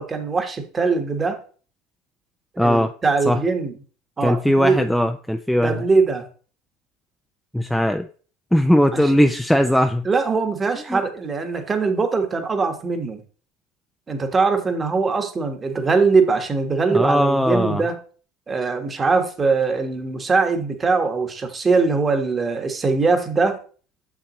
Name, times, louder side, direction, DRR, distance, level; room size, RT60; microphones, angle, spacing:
voice 1, 0.0-1.4 2.6-3.7 4.2-4.9 5.6-6.2 8.9-9.1 10.0-13.2 14.1-18.0 18.5-23.6, right 4 dB, 25° right, 6 dB, 1.2 m, -21 dB
voice 2, 2.6-2.9 3.3-3.4 4.2-5.7 7.5-8.0 8.5-10.1 10.9-11.0 16.9-17.8, equal, ahead, 6 dB, 0.4 m, -19 dB
6.8 x 5.9 x 3.0 m, 0.40 s
supercardioid pair, 95°, 0 cm